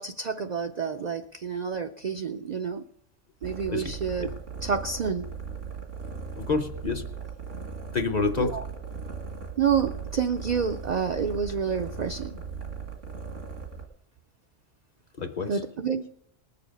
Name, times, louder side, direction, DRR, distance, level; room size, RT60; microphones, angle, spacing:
voice 1, 0.0-2.8 3.4-4.3 4.6-5.3 8.4-8.6 9.6-12.4 15.5-16.1, right 6 dB, 55° right, 6 dB, 0.4 m, -28 dB
sound 1, 3.4-13.8, right 5 dB, 85° right, 2.0 m, -38 dB
voice 2, 6.4-7.1 7.9-8.6 15.2-15.6, left 4 dB, 40° left, 7 dB, 0.7 m, -28 dB
19.5 x 6.9 x 5.1 m, 0.74 s
omnidirectional pair, 1.3 m